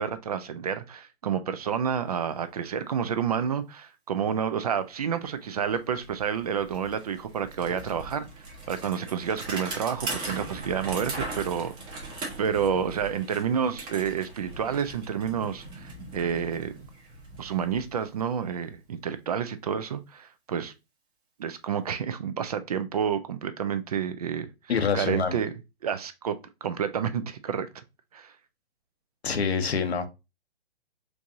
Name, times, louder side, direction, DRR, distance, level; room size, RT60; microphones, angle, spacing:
voice 1, 0.0-12.1 12.4-16.7 17.4-20.7 21.4-24.5 24.9-25.5 25.8-27.7 28.1-28.3, right 7 dB, 40° right, 0.4 m, -29 dB
Bicycle, 5.2-5.3 5.6-18.5, right 2 dB, 15° right, 0.8 m, -40 dB
voice 2, 24.7-25.4 29.2-30.1, left 6 dB, 80° left, 0.9 m, -26 dB
4.5 x 2.5 x 2.6 m
hypercardioid pair, 140°, 32 cm